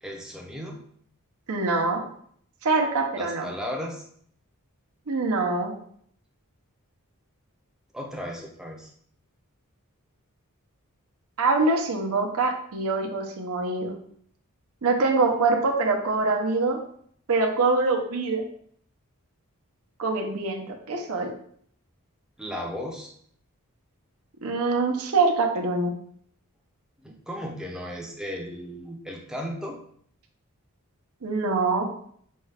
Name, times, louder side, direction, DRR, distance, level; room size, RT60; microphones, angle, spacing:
voice 1, 0.0-0.8 3.2-4.0 7.9-8.9 22.4-23.1 27.0-29.8, equal, 5° right, -1 dB, 0.6 m, -35 dB
voice 2, 1.5-2.0 2.6-3.5 5.1-5.7 11.4-13.9 14.8-16.8 17.3-18.4 20.0-21.3 24.4-25.9 31.2-31.9, right 3 dB, 70° right, 1 dB, 0.7 m, -24 dB
5.3 x 2.4 x 3.3 m, 0.63 s
head